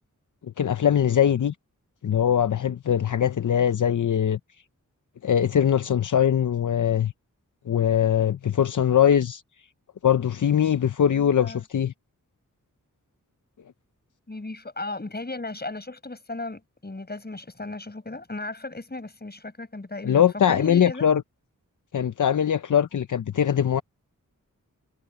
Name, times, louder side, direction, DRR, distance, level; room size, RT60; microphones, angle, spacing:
voice 1, 0.6-1.5 2.0-4.4 5.2-7.1 7.7-9.4 10.0-11.9 20.0-21.2 21.9-23.8, left 9 dB, 65° left, 0.7 m, -21 dB
voice 2, 14.3-21.1, left 2 dB, 30° left, 6.1 m, -36 dB
wide cardioid pair, 105°, 32 cm